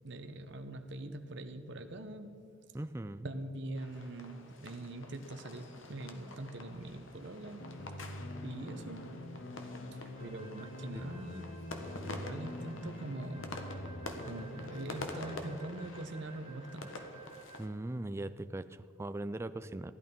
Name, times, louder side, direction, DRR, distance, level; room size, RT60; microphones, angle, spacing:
voice 1, 0.0-2.4 3.2-7.7 8.4-9.2 9.9-11.7 12.0-13.5 14.2-16.9, right 2 dB, 65° right, 7 dB, 1.0 m, -43 dB
voice 2, 2.7-3.3 17.6-19.9, right 1 dB, 15° right, 12 dB, 0.4 m, -39 dB
sound 1, 3.8-17.7, left 2 dB, 90° left, 1.5 m, -47 dB
sound 2, 7.6-15.2, left 1 dB, 55° left, 1.0 m, -45 dB
Wind instrument woodwind instrument, 10.1-17.8, right 4 dB, 30° right, 1.9 m, -55 dB
15.0 x 11.0 x 5.4 m, 2.4 s
head